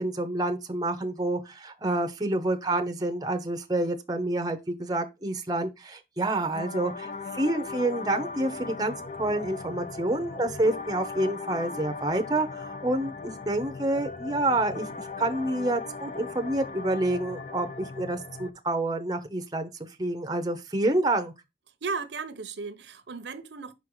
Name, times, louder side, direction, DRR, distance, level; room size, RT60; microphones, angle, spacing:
voice 1, 0.0-14.9 15.2-19.7 20.0-21.3, right 1 dB, 20° right, 0.7 m, -28 dB
sound 1, 6.5-18.5, left 4 dB, 40° left, 0.5 m, -38 dB
voice 2, 21.8-23.7, right 4 dB, 80° right, 0.8 m, -35 dB
5.6 x 4.6 x 3.8 m
head